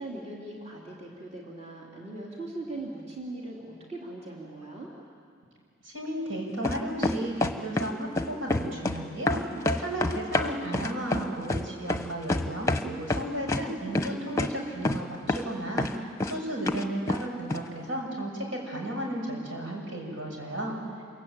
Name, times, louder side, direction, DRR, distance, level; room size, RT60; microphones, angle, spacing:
voice 1, 0.0-4.9 9.6-10.2, right 2 dB, 35° right, -3 dB, 3.4 m, -40 dB
voice 2, 5.8-9.4 9.8-20.8, right 1 dB, 80° right, 0 dB, 6.6 m, -34 dB
sound 1, 6.6-7.9 8.2-9.0 9.3-12.8 13.1-13.6 13.9-14.1 14.4-14.5 14.8-15.0 15.3-15.5 15.8-16.3 16.7-17.2 17.5-17.6, left 2 dB, 15° left, 1.0 m, -27 dB
27.5 x 23.0 x 9.0 m, 2.2 s
head